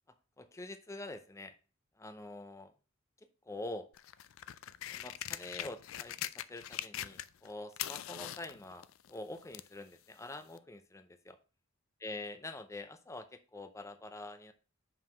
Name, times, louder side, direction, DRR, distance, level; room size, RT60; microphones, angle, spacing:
voice 1, 0.4-1.5 2.0-2.7 3.5-3.9 4.9-6.1 6.5-11.4 12.0-14.5, left 2 dB, 15° left, 8 dB, 0.6 m, -45 dB
sound 1, 3.9-7.5 7.7-9.8 10.6-10.7, left 12 dB, 75° left, 0.4 m, -42 dB
5.6 x 4.8 x 6.1 m, 0.35 s
head